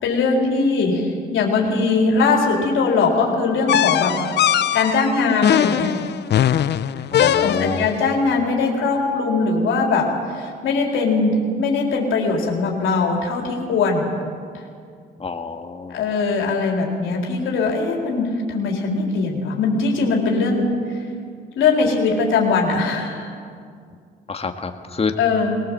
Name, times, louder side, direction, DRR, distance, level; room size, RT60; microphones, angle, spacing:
voice 1, 0.0-5.9 7.2-14.1 14.5-14.6 15.9-20.7 21.6-23.3 25.2-25.5, left 4 dB, 80° left, 0 dB, 3.9 m, -21 dB
sound 1, 3.7-8.0, left 10 dB, 60° left, 0.6 m, -20 dB
voice 2, 7.1-7.8 15.2-15.9 24.3-25.1, left 5 dB, 30° left, 5 dB, 1.8 m, -27 dB
21.0 x 19.0 x 7.6 m, 2.2 s
cardioid pair, 90°, 20 cm